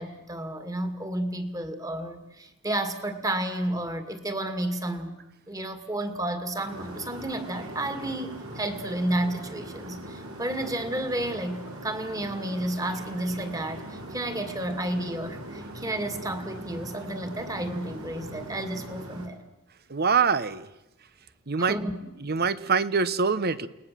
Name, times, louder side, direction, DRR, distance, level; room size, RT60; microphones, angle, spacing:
voice 1, 0.0-5.1 5.5-19.4 21.6-22.1, right 1 dB, 15° right, 8 dB, 2.3 m, -31 dB
sound 1, 6.6-19.3, right 1 dB, 65° right, 4.7 m, -41 dB
voice 2, 19.9-20.7 21.5-21.8 22.2-23.7, right 5 dB, 45° right, 15 dB, 1.0 m, -24 dB
29.5 x 20.0 x 7.6 m, 0.91 s
head